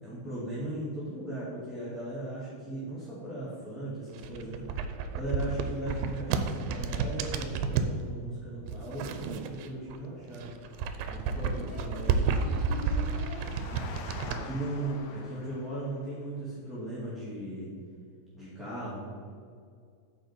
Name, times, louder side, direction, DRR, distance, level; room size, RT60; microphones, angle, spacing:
voice 1, 0.0-4.7 5.1-10.5 11.1-12.1 14.2-17.7 18.3-19.0, right 1 dB, ahead, -11 dB, 1.4 m, -37 dB
sound 1, 4.1-8.0 8.7-10.0 10.3-14.4, right 5 dB, 85° right, 2.4 m, -31 dB
Engine, 10.4-16.1, left 4 dB, 90° left, 2.6 m, -47 dB
voice 2, 11.3-13.8, left 3 dB, 65° left, -10 dB, 4.2 m, -44 dB
9.0 x 6.9 x 4.5 m, 2.2 s
omnidirectional pair, 4.1 m